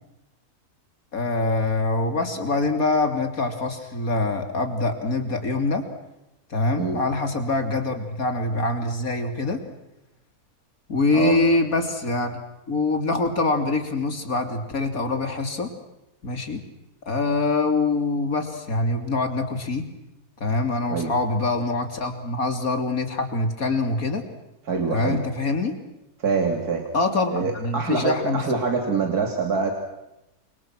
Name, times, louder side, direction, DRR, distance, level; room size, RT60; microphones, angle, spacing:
voice 1, 1.1-5.8 6.5-9.6 10.9-12.4 12.7-15.7 16.2-16.6 17.1-19.8 20.4-24.2 24.9-25.7 26.9-28.4, left 3 dB, 65° left, 6 dB, 3.7 m, -24 dB
voice 2, 24.7-25.2 26.2-26.8 27.3-29.7, right 4 dB, 75° right, 3 dB, 3.4 m, -25 dB
29.5 x 26.5 x 6.2 m, 0.93 s
omnidirectional pair, 1.6 m